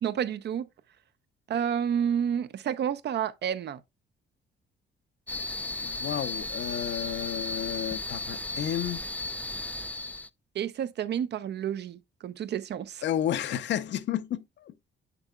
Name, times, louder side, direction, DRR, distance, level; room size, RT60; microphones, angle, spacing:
voice 1, 0.0-0.7 1.5-3.8 10.5-13.0, right 8 dB, 60° right, 0.6 m, -30 dB
sound 1, 5.3-10.3, left 2 dB, 10° left, 0.3 m, -35 dB
voice 2, 5.8-9.0 13.0-14.7, left 11 dB, 65° left, 0.7 m, -31 dB
8.1 x 6.9 x 2.3 m
cardioid pair, 90°, 20 cm